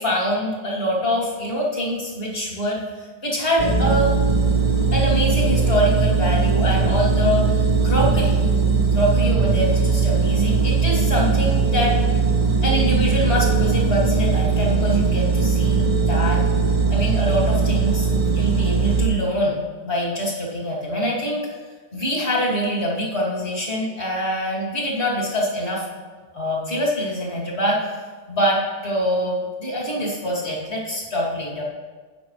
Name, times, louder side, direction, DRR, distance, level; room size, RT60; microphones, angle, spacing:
voice 1, 0.0-4.1 4.9-8.4 8.9-12.0 12.6-16.4 16.9-21.5 21.9-25.9 26.3-31.6, equal, 40° left, -5 dB, 2.9 m, -24 dB
sound 1, 3.6-19.1, right 4 dB, 30° right, 0.9 m, -19 dB
12.5 x 9.4 x 3.2 m, 1.4 s
omnidirectional pair, 1.7 m